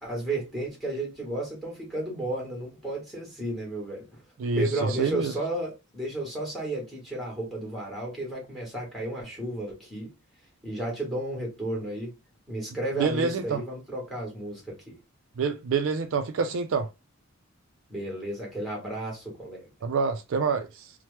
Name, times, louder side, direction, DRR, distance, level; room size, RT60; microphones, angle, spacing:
voice 1, 0.0-4.2 4.5-10.1 10.6-12.1 12.5-15.0 17.9-19.7, right 1 dB, ahead, 1.3 m, -33 dB
voice 2, 4.4-5.3 13.0-13.6 15.4-16.9 19.8-20.9, right 5 dB, 65° right, 0.3 m, -27 dB
2.9 x 2.1 x 3.1 m
head